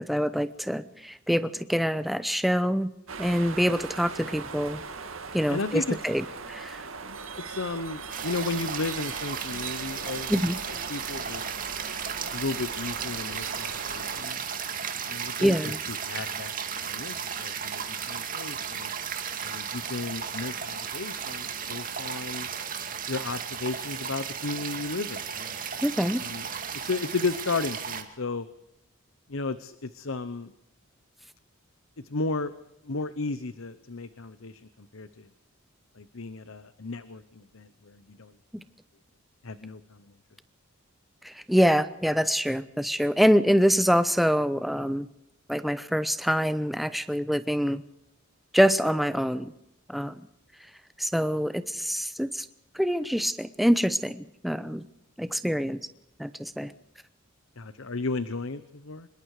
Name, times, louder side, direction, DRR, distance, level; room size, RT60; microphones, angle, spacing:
voice 1, 0.0-2.9 3.2-4.8 5.3-6.8 10.3-10.6 15.4-15.8 25.8-26.2 41.2-45.1 45.5-47.8 48.5-49.5 49.9-50.3 51.0-52.5 52.7-54.8 55.2-55.8 56.2-56.7, equal, ahead, 13 dB, 0.8 m, -25 dB
sound 1, 3.1-14.2, right 4 dB, 70° right, 2.3 m, -40 dB
voice 2, 5.5-6.0 7.4-10.3 10.9-11.6 12.3-14.4 15.1-15.5 16.0-16.5 16.8-18.9 19.4-22.5 23.1-25.6 26.2-26.4 26.7-28.5 29.3-30.5 32.1-32.5 32.8-35.3 36.0-38.3 39.4-40.0 57.6-59.1, left 3 dB, 70° left, 13 dB, 0.9 m, -34 dB
sound 2, 8.1-28.0, right 7 dB, 40° right, 2.3 m, -35 dB
25.5 x 21.5 x 4.9 m, 0.83 s
head